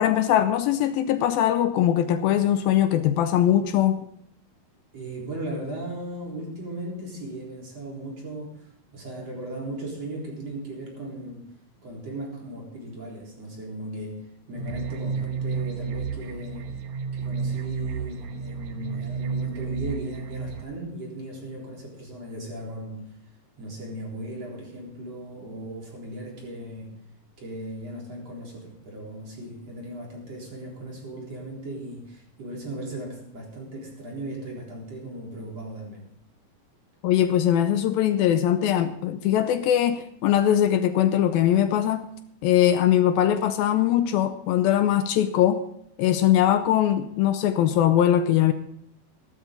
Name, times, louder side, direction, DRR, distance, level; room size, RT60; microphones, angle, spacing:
voice 1, 0.0-4.1 37.0-42.1 42.4-45.6 46.0-48.5, left 11 dB, 80° left, 2.4 m, -21 dB
voice 2, 4.9-11.5 11.8-16.8 17.1-23.0 23.6-27.0 27.4-36.0, right 1 dB, 40° right, 4.8 m, -37 dB
sound 1, 14.6-20.6, right 5 dB, 65° right, 1.9 m, -31 dB
15.5 x 13.0 x 3.9 m
omnidirectional pair, 4.5 m